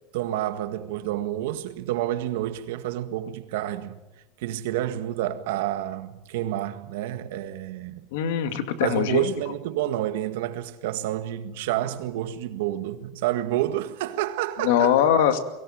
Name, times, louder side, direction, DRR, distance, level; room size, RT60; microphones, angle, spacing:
voice 1, 0.1-4.0 4.4-8.0 8.8-15.0, right 13 dB, 80° right, 1.8 m, -29 dB
voice 2, 8.1-9.3 14.6-15.4, left 9 dB, 75° left, 2.3 m, -22 dB
23.0 x 17.5 x 9.1 m
cardioid pair, 175°, 0 cm